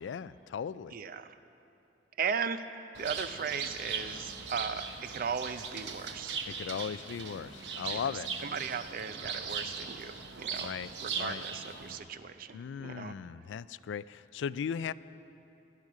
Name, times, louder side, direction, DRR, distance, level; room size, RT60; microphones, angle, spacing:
voice 1, 0.0-0.9 6.5-8.3 10.6-11.4 12.5-14.9, left 7 dB, 85° left, 17 dB, 0.3 m, -37 dB
voice 2, 0.9-1.4 2.2-2.6 3.0-6.4 7.9-8.1 8.4-13.2, right 6 dB, 55° right, 12 dB, 0.5 m, -37 dB
Bird, 2.9-12.0, right 5 dB, 70° right, 1.0 m, -39 dB
17.0 x 12.0 x 4.8 m, 2.9 s
head